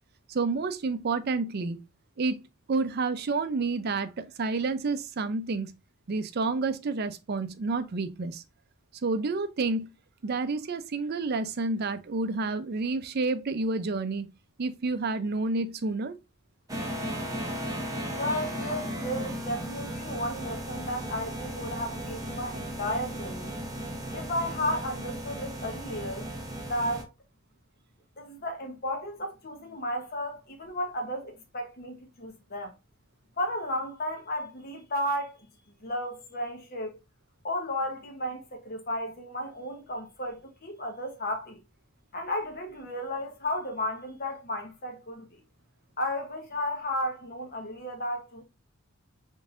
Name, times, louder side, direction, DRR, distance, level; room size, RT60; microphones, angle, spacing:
voice 1, 0.3-1.8 2.2-2.4 2.7-5.7 6.1-8.4 9.0-9.9 10.2-14.3 14.6-16.2, right 3 dB, 50° right, 0.5 m, -29 dB
sound 1, 16.7-27.0, right 1 dB, 15° right, 0.8 m, -36 dB
voice 2, 18.1-23.5 24.1-26.3 26.7-27.1 28.2-32.7 33.4-35.5 35.8-37.0 37.4-41.6 42.1-45.4 46.0-48.4, left 1 dB, 45° left, 1.1 m, -33 dB
3.8 x 3.6 x 2.4 m
head